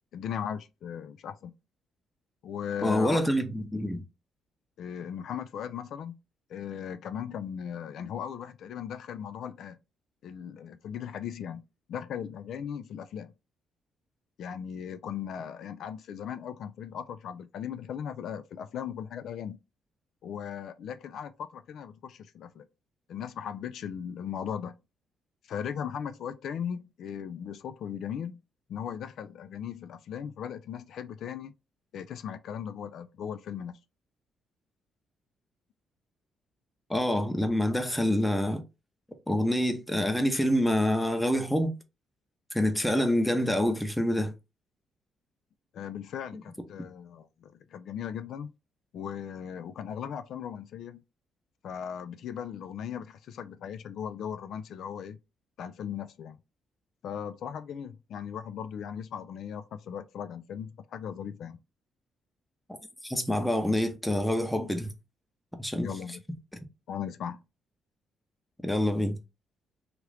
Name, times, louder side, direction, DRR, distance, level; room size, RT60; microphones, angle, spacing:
voice 1, 0.1-1.5 2.4-3.3 4.8-6.2 6.5-9.8 10.2-11.6 11.9-13.3 14.4-19.6 20.2-22.7 23.1-24.7 25.5-28.4 28.7-31.5 31.9-33.7 45.7-48.5 48.9-51.0 51.6-55.2 55.6-56.4 57.0-61.6 65.8-66.2 66.9-67.4, left 8 dB, 70° left, 0.3 m, -38 dB
voice 2, 2.8-4.0 36.9-38.6 39.3-41.7 42.5-44.3 46.3-46.4 63.0-64.9 65.6-65.9 68.6-69.2, left 1 dB, 5° left, 0.7 m, -26 dB
3.0 x 2.4 x 3.2 m
cardioid pair, 90°, 0 cm